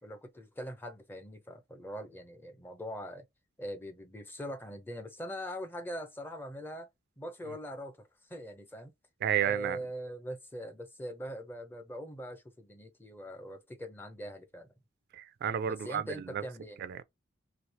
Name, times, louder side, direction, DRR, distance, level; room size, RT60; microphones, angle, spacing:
voice 1, 0.0-3.2 3.6-6.9 7.2-8.9 9.4-14.7 15.7-16.8, equal, 10° left, 0.5 m, -42 dB
voice 2, 9.2-9.8 15.1-16.0 16.3-16.4 16.8-17.0, right 9 dB, 55° right, 0.3 m, -31 dB
3.1 x 2.7 x 2.8 m
head